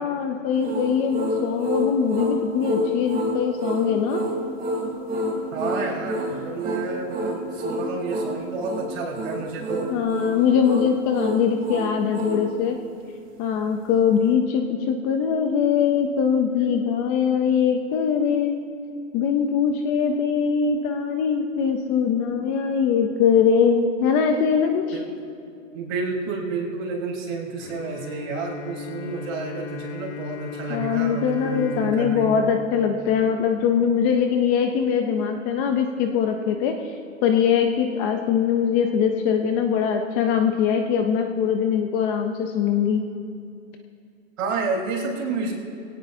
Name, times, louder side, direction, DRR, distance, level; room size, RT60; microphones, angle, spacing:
voice 1, 0.0-4.2 9.9-12.8 13.4-18.6 19.1-25.0 30.7-36.9 37.2-43.0, left 7 dB, 20° left, 5 dB, 0.4 m, -22 dB
sound 1, 0.6-12.5, equal, 20° right, 2.7 m, -28 dB
voice 2, 5.5-9.9 24.9-25.1 25.7-32.3 44.4-45.5, right 4 dB, 70° right, -2 dB, 4.1 m, -30 dB
Bowed string instrument, 27.6-33.8, left 3 dB, 90° left, 2.7 m, -36 dB
21.5 x 17.5 x 2.6 m, 2.5 s
hypercardioid pair, 140°, 41 cm